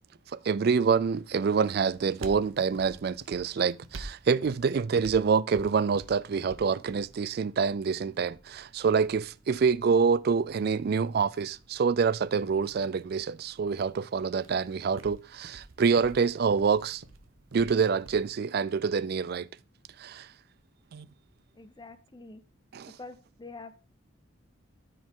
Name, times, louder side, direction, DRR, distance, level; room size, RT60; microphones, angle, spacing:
voice 1, 0.5-17.0 17.5-19.5 20.0-20.3 20.9-21.1 22.7-22.9, right 5 dB, 50° right, 0.4 m, -26 dB
sound 1, 1.3-18.3, right 2 dB, 90° right, 0.9 m, -50 dB
voice 2, 21.5-22.4 23.0-23.7, left 3 dB, 20° left, 0.8 m, -46 dB
13.0 x 5.1 x 3.7 m
head